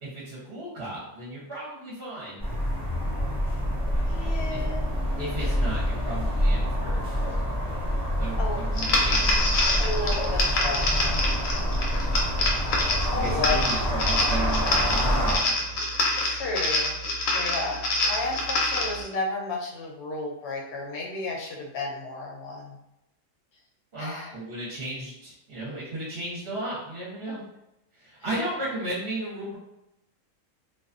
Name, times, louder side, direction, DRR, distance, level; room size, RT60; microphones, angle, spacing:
voice 1, 0.0-2.4 4.5-4.6 5.2-7.0 8.2-9.5 13.1-15.7 23.9-27.4 28.0-29.6, right 1 dB, 50° right, -7 dB, 0.9 m, -34 dB
sound 1, 2.4-15.4, equal, 25° left, 0.7 m, -26 dB
voice 2, 4.1-4.9 5.4-5.5 7.2-7.3 8.4-8.6 9.8-11.4 12.8-13.7 16.2-22.8 24.0-24.3, left 3 dB, 60° left, -2 dB, 0.8 m, -33 dB
sound 2, 8.8-19.0, left 2 dB, 75° left, 1.0 m, -26 dB
2.5 x 2.3 x 2.4 m, 0.85 s
omnidirectional pair, 1.5 m